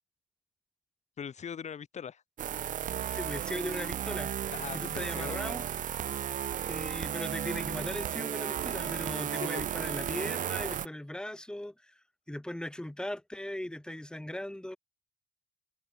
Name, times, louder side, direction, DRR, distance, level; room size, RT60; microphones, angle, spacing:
voice 1, 1.2-2.2 4.5-5.5 9.4-9.7, left 7 dB, 40° left, 6.2 m, -41 dB
sound 1, 2.4-10.9, right 10 dB, 50° right, 1.3 m, -34 dB
voice 2, 3.1-4.3 4.7-5.6 6.7-11.7 12.3-14.8, left 1 dB, 5° left, 5.1 m, -38 dB
cardioid pair, 110°, 17 cm